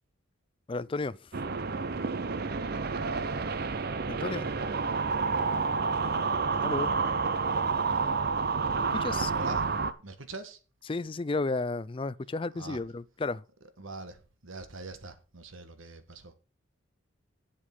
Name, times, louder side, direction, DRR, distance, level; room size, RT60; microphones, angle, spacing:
voice 1, 0.7-1.3 4.1-4.5 6.6-6.9 8.9-9.3 10.9-13.4, left 3 dB, 25° left, 0.4 m, -33 dB
sound 1, 1.3-9.9, right 4 dB, 50° right, 0.7 m, -29 dB
voice 2, 9.3-9.7 10.0-10.6 12.5-12.8 13.8-16.4, right 2 dB, 75° right, 1.5 m, -43 dB
8.4 x 7.7 x 5.5 m
head